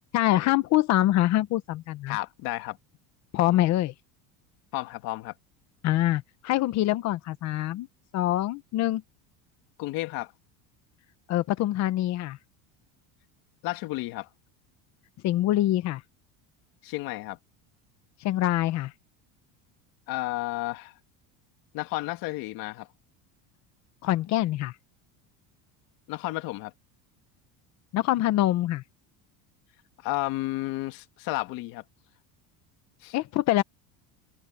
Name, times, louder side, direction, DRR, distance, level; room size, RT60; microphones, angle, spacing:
voice 1, 0.1-2.2 3.3-3.9 5.8-7.9 8.1-9.0 11.3-12.4 15.2-16.0 18.2-18.9 24.0-24.7 27.9-28.8 33.1-33.6, left 15 dB, 40° left, 1.0 m, -24 dB
voice 2, 2.1-2.8 4.7-5.3 9.8-10.3 13.6-14.3 16.8-17.4 20.1-20.9 21.7-22.9 26.1-26.7 30.0-31.8 33.0-33.2, left 19 dB, 55° left, 1.9 m, -32 dB
cardioid pair, 175°, 41 cm